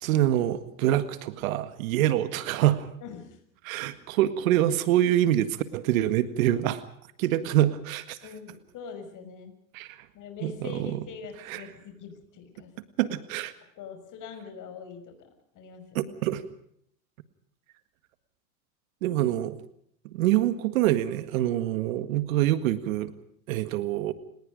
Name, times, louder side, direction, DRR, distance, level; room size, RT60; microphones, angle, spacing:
voice 1, 0.0-2.9 3.7-6.8 7.2-8.2 9.7-10.0 10.4-11.0 11.5-11.6 13.0-13.5 16.0-16.4 19.0-19.6 20.1-23.1 23.5-24.1, right 13 dB, 75° right, 12 dB, 1.8 m, -25 dB
voice 2, 3.0-3.4 8.2-9.6 10.1-12.7 13.8-15.3 15.5-16.1, left 5 dB, 45° left, 6 dB, 6.3 m, -43 dB
30.0 x 19.5 x 5.2 m, 0.69 s
hypercardioid pair, 95°, 41 cm